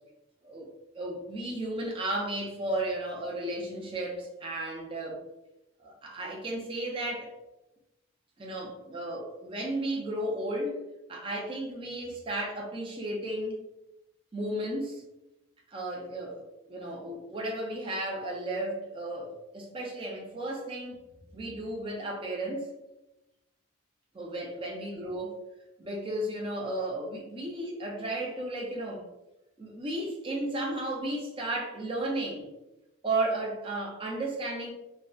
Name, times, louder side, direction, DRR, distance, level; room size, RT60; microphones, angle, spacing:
voice 1, 0.9-5.2 5.8-7.3 8.4-10.8 11.1-13.6 14.3-15.0 15.7-21.0 21.3-22.7 24.1-25.4 25.8-29.0 29.6-32.5 33.0-34.7, right 1 dB, 25° right, -1 dB, 0.4 m, -34 dB
2.6 x 2.1 x 2.2 m, 0.96 s
head